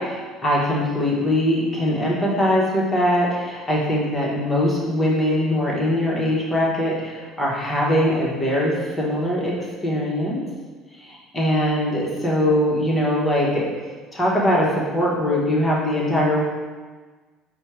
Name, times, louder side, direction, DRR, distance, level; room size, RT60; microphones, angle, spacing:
voice 1, 0.4-9.5 9.8-10.4 11.3-13.7 14.1-14.7 14.9-16.4, left 1 dB, 20° left, -4 dB, 1.2 m, -21 dB
4.2 x 2.3 x 4.7 m, 1.4 s
supercardioid pair, 105°, 0 cm